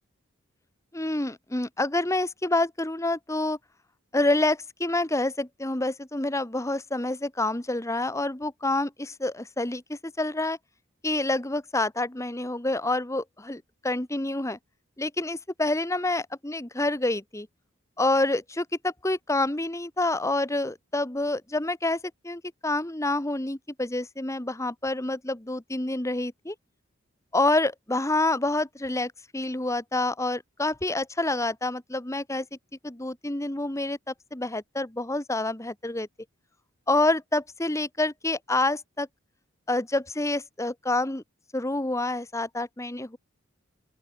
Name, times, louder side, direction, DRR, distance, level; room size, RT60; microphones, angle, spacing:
voice 1, 0.9-3.6 4.1-10.6 11.0-14.6 15.0-17.5 18.0-26.5 27.3-32.5 32.8-36.1 36.9-39.1 39.7-41.2 41.5-43.2, left 2 dB, 15° left, 1.3 m, -27 dB
open air
head